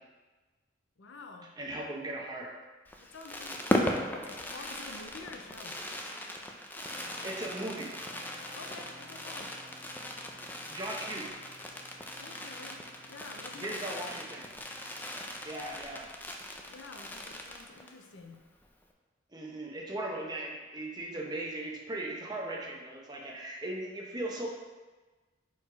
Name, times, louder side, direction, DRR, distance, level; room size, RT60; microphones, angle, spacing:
voice 1, 1.0-1.5 3.0-5.8 8.5-9.5 12.1-12.8 13.1-13.8 14.1-14.2 16.7-18.4, left 3 dB, 85° left, 4 dB, 0.6 m, -49 dB
voice 2, 1.6-2.5 7.2-7.9 10.7-11.3 13.5-14.4 15.4-16.1 19.3-24.5, right 1 dB, 20° right, -1 dB, 0.8 m, -38 dB
Fireworks, 2.9-18.0 18.3-18.4 18.6-18.9, left 1 dB, 10° left, 0.4 m, -38 dB
Guitar, 6.8-15.7, equal, 55° right, 1.5 m, -55 dB
4.8 x 4.2 x 4.6 m, 1.3 s
head